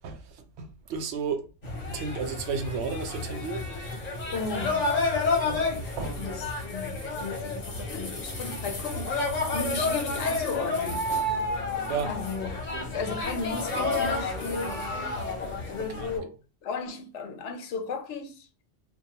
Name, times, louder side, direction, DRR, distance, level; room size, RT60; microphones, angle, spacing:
voice 1, 0.0-3.6 5.5-6.2 11.9-12.1 12.7-12.9 16.0-16.1, right 5 dB, 70° right, 0.8 m, -33 dB
sound 1, 1.6-16.2, left 3 dB, 40° left, 0.8 m, -30 dB
voice 2, 4.3-5.0 6.0-11.1 12.1-14.8 15.7-16.4 16.6-18.5, left 4 dB, 75° left, 0.9 m, -35 dB
2.3 x 2.3 x 2.7 m
omnidirectional pair, 1.3 m